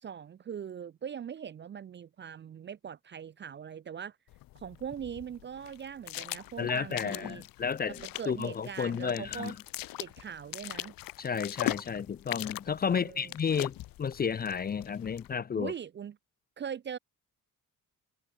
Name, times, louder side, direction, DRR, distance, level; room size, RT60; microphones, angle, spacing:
voice 1, 0.0-4.2 4.6-7.4 7.9-9.5 10.0-10.9 12.9-13.3 15.5-16.2 16.6-17.0, right 8 dB, 35° right, 0.4 m, -41 dB
sound 1, 4.3-15.3, left 16 dB, 85° left, 0.5 m, -41 dB
voice 2, 6.6-9.6 11.2-15.7, left 6 dB, 30° left, 0.4 m, -32 dB
cardioid pair, 135°, 34 cm